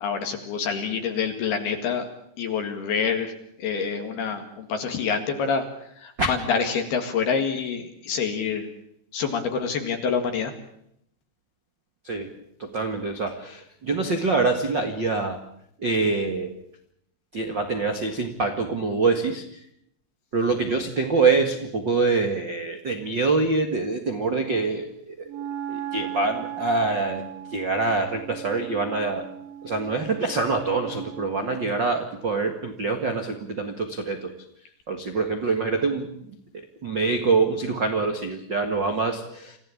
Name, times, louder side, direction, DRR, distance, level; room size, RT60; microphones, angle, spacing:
voice 1, 0.0-2.1 2.4-3.3 3.6-5.7 6.0-8.7 9.1-10.5, left 6 dB, 60° left, 5 dB, 3.6 m, -27 dB
voice 2, 12.6-15.4 15.8-16.5 17.3-19.6 20.3-25.3 25.7-29.2 29.6-34.3 34.9-36.4 36.8-39.6, right 3 dB, 70° right, 6 dB, 1.0 m, -25 dB
Wind instrument woodwind instrument, 25.3-31.9, right 11 dB, 90° right, 5.0 m, -38 dB
27.0 x 16.5 x 8.6 m, 0.73 s
omnidirectional pair, 5.4 m